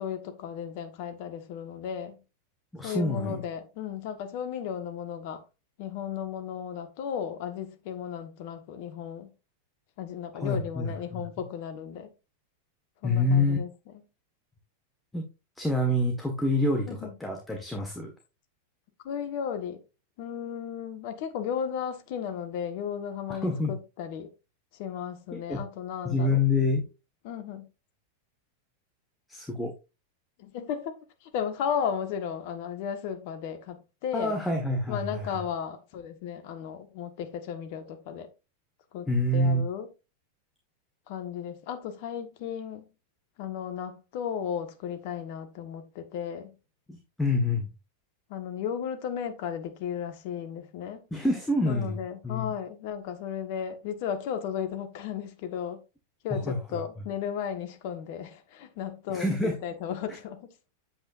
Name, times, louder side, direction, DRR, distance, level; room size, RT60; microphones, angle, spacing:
voice 1, 0.0-2.1 2.8-5.4 5.8-9.3 10.0-12.1 13.0-13.7 16.9-17.1 19.0-19.8 20.2-24.3 24.7-26.4 27.2-27.7 30.4-34.4 34.9-38.3 38.9-39.9 41.1-42.8 43.4-46.5 48.3-51.0 51.6-55.8 56.2-60.5, left 8 dB, 50° left, 1.3 m, -35 dB
voice 2, 2.7-3.4 10.3-11.2 13.0-13.6 15.1-15.3 15.6-18.1 23.4-23.7 25.3-25.6 26.0-26.8 29.3-29.7 34.1-35.4 39.1-39.7 46.9-47.7 51.1-52.5 56.3-56.8 59.1-59.5, left 2 dB, 5° left, 1.5 m, -27 dB
8.7 x 7.9 x 2.5 m
figure-of-eight pair, 90°, 0 cm